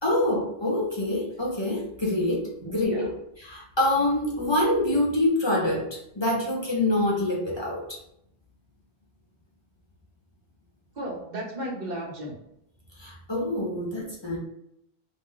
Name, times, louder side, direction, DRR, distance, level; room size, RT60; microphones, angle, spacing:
voice 1, 0.0-3.1 3.4-5.9 6.2-7.8 13.0-14.4, left 1 dB, 40° left, -4 dB, 0.4 m, -25 dB
voice 2, 2.6-3.0 11.0-12.3, right 1 dB, 45° right, -2 dB, 0.9 m, -34 dB
2.5 x 2.1 x 3.6 m, 0.78 s
omnidirectional pair, 1.1 m